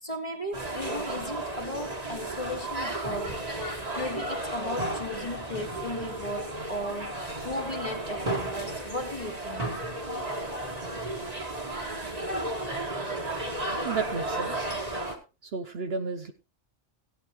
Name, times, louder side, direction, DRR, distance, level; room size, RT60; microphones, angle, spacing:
voice 1, 0.0-3.4 4.0-7.2 7.4-9.7, left 1 dB, 25° left, 2.0 m, -36 dB
sound 1, 0.5-15.2, right 1 dB, 30° right, 1.9 m, -33 dB
voice 2, 13.8-14.7 15.4-16.3, right 5 dB, 55° right, 1.0 m, -32 dB
16.0 x 9.1 x 3.1 m
omnidirectional pair, 1.3 m